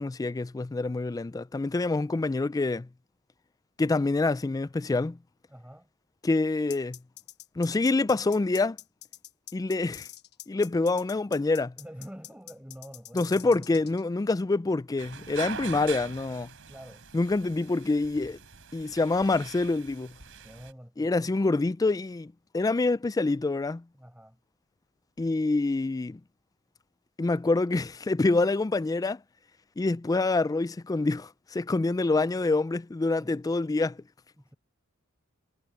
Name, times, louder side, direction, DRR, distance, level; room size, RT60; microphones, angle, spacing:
voice 1, 0.0-2.9 3.8-5.2 6.2-7.0 7.6-8.8 9.5-10.1 10.5-11.7 13.1-16.5 17.1-18.4 18.7-20.1 21.0-23.8 25.2-26.2 27.2-29.2 29.8-34.0, left 3 dB, 15° left, 0.3 m, -26 dB
voice 2, 5.5-5.9 11.8-13.9 16.7-17.0 20.4-21.2 23.9-24.4 33.2-33.4 34.4-34.6, equal, 5° right, 4.9 m, -47 dB
sound 1, 6.7-14.0, left 13 dB, 50° left, 1.1 m, -45 dB
sound 2, 15.0-20.7, right 6 dB, 60° right, 5.1 m, -43 dB
head